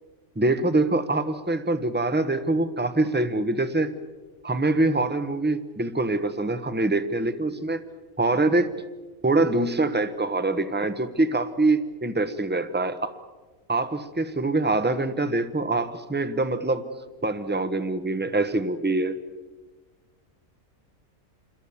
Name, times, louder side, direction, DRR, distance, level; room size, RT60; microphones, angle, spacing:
voice 1, 0.4-3.9 4.4-7.8 8.2-8.7 9.2-13.2 13.7-16.8 17.2-19.2, right 2 dB, 10° right, 11 dB, 1.0 m, -24 dB
28.0 x 22.0 x 7.2 m, 1.3 s
omnidirectional pair, 1.4 m